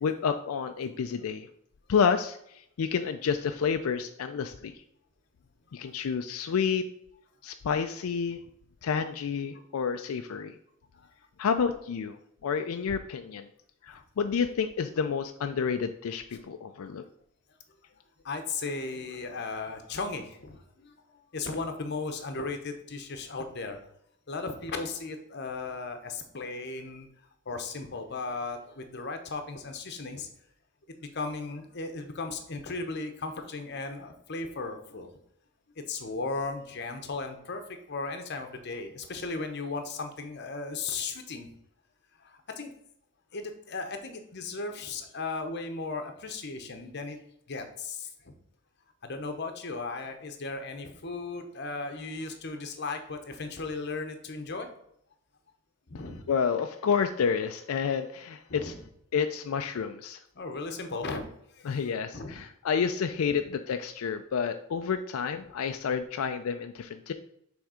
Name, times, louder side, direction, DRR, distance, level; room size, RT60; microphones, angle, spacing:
voice 1, 0.0-1.5 1.9-4.7 5.7-6.8 7.4-8.4 8.8-10.5 11.4-12.2 12.4-13.5 13.8-17.0 56.3-58.7 59.1-60.2 61.7-67.1, left 6 dB, 85° left, 7 dB, 0.4 m, -29 dB
voice 2, 18.2-23.8 24.3-27.1 27.5-30.3 31.1-35.1 35.8-37.6 37.9-41.5 42.2-42.7 43.3-47.2 47.5-48.3 49.0-54.7 55.9-56.3 58.5-58.8 60.3-62.3 63.3-63.4, left 3 dB, 50° left, 6 dB, 0.9 m, -36 dB
6.3 x 3.5 x 4.9 m, 0.73 s
head